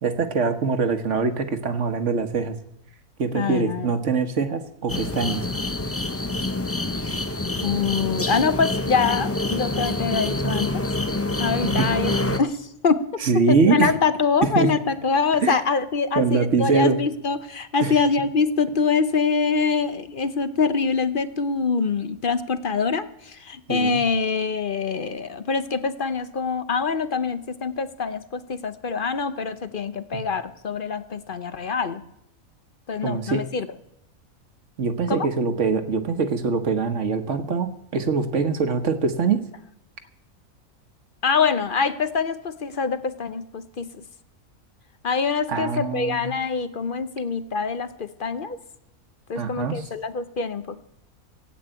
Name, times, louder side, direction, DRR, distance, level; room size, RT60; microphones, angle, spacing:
voice 1, 0.0-2.6 3.2-5.4 11.8-11.9 13.2-13.9 14.4-14.7 15.4-15.5 16.2-17.0 17.8-17.9 23.7-24.0 30.1-30.2 33.0-33.4 34.8-39.4 45.5-46.3 49.4-49.8, right 5 dB, 55° right, 9 dB, 1.4 m, -23 dB
voice 2, 3.3-3.9 7.6-10.8 11.4-13.0 13.5-32.0 32.9-33.7 35.1-35.3 41.2-44.0 45.0-48.6 49.3-50.8, left 5 dB, 45° left, 12 dB, 0.8 m, -24 dB
sound 1, 4.9-12.4, left 2 dB, 25° left, 0.3 m, -26 dB
16.0 x 8.3 x 9.0 m, 0.79 s
omnidirectional pair, 1.5 m